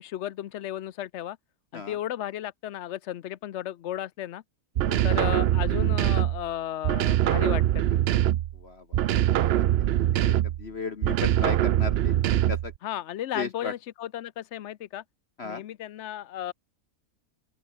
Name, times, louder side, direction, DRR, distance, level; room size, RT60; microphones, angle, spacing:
voice 1, 0.0-1.4 1.7-4.4 5.0-8.0 12.8-15.0 15.4-16.5, left 12 dB, 60° left, 0.8 m, -34 dB
voice 2, 4.8-5.3 8.5-9.2 9.5-12.2 12.5-12.7 13.3-13.7 15.4-15.6, left 4 dB, 45° left, 1.5 m, -36 dB
sound 1, 4.8-6.5 6.8-8.6 8.9-10.6 11.0-12.7, right 12 dB, 80° right, 0.5 m, -23 dB
open air
omnidirectional pair, 1.6 m